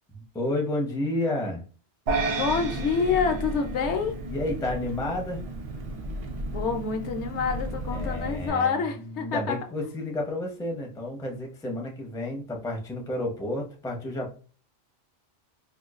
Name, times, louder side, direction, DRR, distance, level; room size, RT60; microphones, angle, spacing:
voice 1, 0.2-1.6 4.3-5.5 7.9-8.7 9.2-14.3, left 1 dB, 5° left, 0.4 m, -31 dB
Engine, 2.1-8.5, right 1 dB, 55° right, 0.4 m, -35 dB
sound 1, 2.1-4.5, right 4 dB, 80° right, 1.0 m, -31 dB
voice 2, 2.2-4.2 6.5-9.6, left 5 dB, 75° left, 0.9 m, -27 dB
4.3 x 2.2 x 2.4 m
omnidirectional pair, 1.2 m